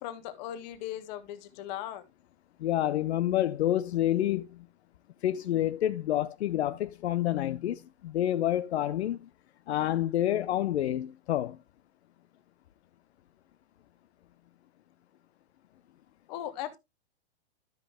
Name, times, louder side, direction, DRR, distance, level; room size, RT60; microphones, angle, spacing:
voice 1, 0.0-2.0 16.3-16.8, left 12 dB, 40° left, 1.5 m, -38 dB
voice 2, 2.6-4.5 5.2-9.3 9.7-11.6, left 12 dB, 75° left, 0.7 m, -28 dB
12.5 x 5.4 x 3.4 m
hypercardioid pair, 140°, 33 cm